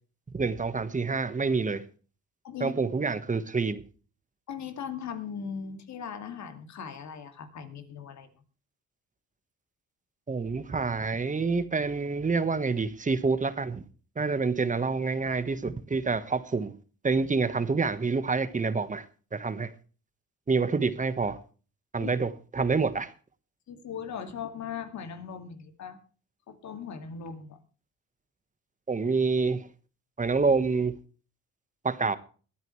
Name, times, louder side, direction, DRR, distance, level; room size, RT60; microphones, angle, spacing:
voice 1, 0.3-1.8 2.6-3.8 10.3-13.8 14.2-16.7 17.0-19.0 19.3-19.7 20.5-21.4 21.9-23.1 28.9-29.7 30.2-30.9 31.8-32.2, right 4 dB, 25° right, 1.3 m, -27 dB
voice 2, 2.4-2.8 4.5-8.3 22.0-22.1 23.7-26.0 26.5-27.6, left 7 dB, 65° left, 2.4 m, -39 dB
22.5 x 9.1 x 3.2 m
cardioid pair, 90°, 30 cm